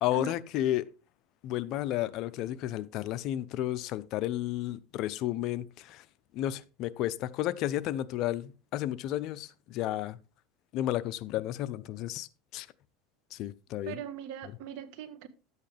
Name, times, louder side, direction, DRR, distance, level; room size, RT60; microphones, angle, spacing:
voice 1, 0.0-0.9 1.4-6.0 6.3-10.2 10.7-12.3 12.5-12.7 13.3-13.9, left 13 dB, 55° left, 0.6 m, -32 dB
voice 2, 13.8-15.3, right 8 dB, 65° right, 1.3 m, -40 dB
11.5 x 8.2 x 3.4 m
supercardioid pair, 125°, 0 cm